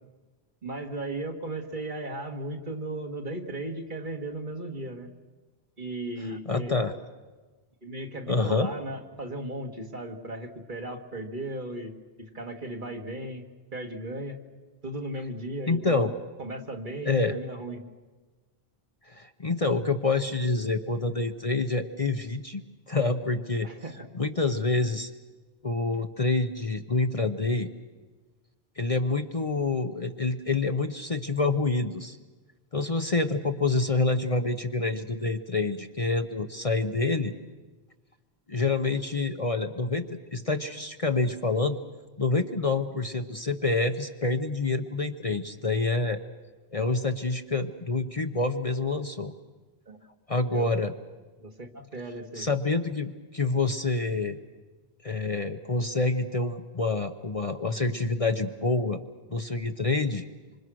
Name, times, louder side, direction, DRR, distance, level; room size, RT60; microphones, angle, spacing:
voice 1, 0.6-5.1 5.8-6.7 7.8-11.9 12.2-13.4 13.7-14.4 14.8-16.1 16.4-17.8 23.6-24.1 49.9-50.0 50.5-50.8 51.4-52.5, right 1 dB, 50° right, 3 dB, 2.1 m, -36 dB
voice 2, 6.2-6.9 8.3-8.7 15.7-16.1 17.0-17.3 19.0-23.7 24.1-25.1 25.6-27.7 28.8-32.2 32.7-37.3 38.5-41.8 42.2-46.2 46.7-49.3 50.3-50.9 52.3-54.4 55.0-59.0 59.3-60.2, left 3 dB, 35° left, 6 dB, 0.9 m, -27 dB
26.5 x 26.0 x 6.3 m, 1.3 s
omnidirectional pair, 1.1 m